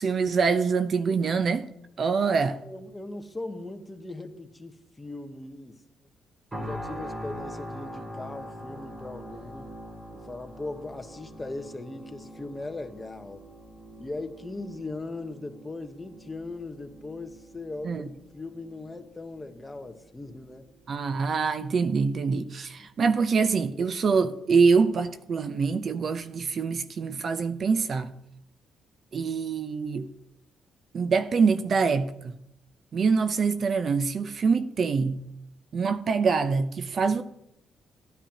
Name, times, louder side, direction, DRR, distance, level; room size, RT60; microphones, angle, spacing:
voice 1, 0.0-1.7 2.0-2.6 17.8-18.1 20.9-28.1 29.1-30.1 30.9-32.3 32.9-35.2 35.7-37.2, right 5 dB, 50° right, 0.7 m, -25 dB
voice 2, 2.6-5.8 6.6-9.8 10.1-13.4 14.0-20.7 22.8-22.9, left 2 dB, 15° left, 1.2 m, -39 dB
sound 1, 6.5-21.5 22.0-22.2, equal, 20° right, 2.7 m, -43 dB
17.0 x 10.0 x 2.9 m
cardioid pair, 90°, 0 cm